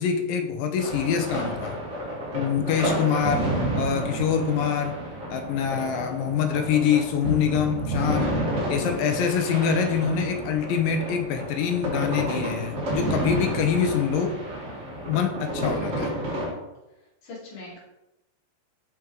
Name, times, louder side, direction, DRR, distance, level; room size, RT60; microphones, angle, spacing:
voice 1, 0.0-1.8 2.3-3.5 3.7-5.0 5.3-8.4 8.7-14.4 15.1-16.1, left 7 dB, 75° left, 6 dB, 2.2 m, -25 dB
sound 1, 0.8-16.5, right 1 dB, 30° right, 1.2 m, -30 dB
voice 2, 2.8-3.3 8.8-9.2 15.7-16.2 17.2-17.8, left 4 dB, 60° left, -5 dB, 3.6 m, -41 dB
5.9 x 5.8 x 3.8 m, 0.96 s
omnidirectional pair, 4.3 m